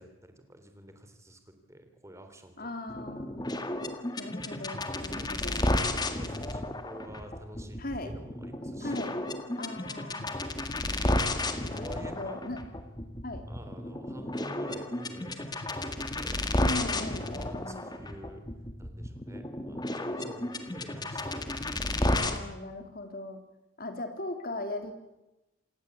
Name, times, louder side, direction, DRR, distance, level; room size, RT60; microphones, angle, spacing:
voice 1, 0.0-3.0 4.9-9.1 11.5-12.4 13.5-16.4 17.4-18.4 18.8-21.8, right 1 dB, 15° right, 7 dB, 3.5 m, -49 dB
voice 2, 2.6-3.4 4.2-5.7 7.8-8.1 8.8-9.2 9.6-10.3 11.7-12.8 13.2-13.5 16.6-17.9 22.1-23.4 23.8-24.9, left 2 dB, 45° left, 6 dB, 3.6 m, -38 dB
sound 1, 2.9-22.4, left 1 dB, 20° left, 1.8 m, -33 dB
27.5 x 18.5 x 8.4 m, 0.96 s
head